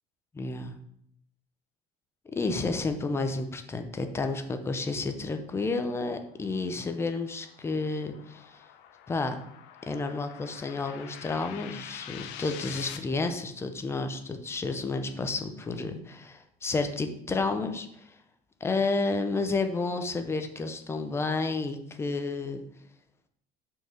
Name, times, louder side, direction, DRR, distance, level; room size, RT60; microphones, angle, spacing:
voice 1, 0.3-0.7 2.3-8.6 9.1-9.4 9.9-18.0 18.6-22.6, left 3 dB, 15° left, 7 dB, 0.6 m, -31 dB
sound 1, 6.3-13.0, left 10 dB, 65° left, 0.8 m, -46 dB
6.5 x 4.7 x 6.3 m, 0.72 s
cardioid pair, 175°, 19 cm